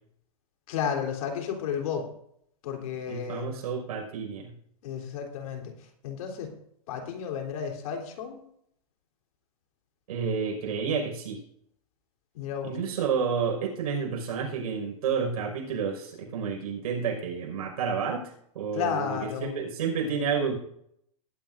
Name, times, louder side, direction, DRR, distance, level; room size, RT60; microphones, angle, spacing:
voice 1, 0.7-2.0 2.6-3.5 4.8-5.7 6.0-6.5 6.9-8.4 12.4-12.8 18.7-19.5, left 7 dB, 65° left, 2 dB, 3.5 m, -32 dB
voice 2, 3.1-4.5 10.1-11.4 12.6-20.5, right 6 dB, 70° right, 1 dB, 5.3 m, -30 dB
20.5 x 12.0 x 2.6 m, 0.71 s
hypercardioid pair, 135°, 19 cm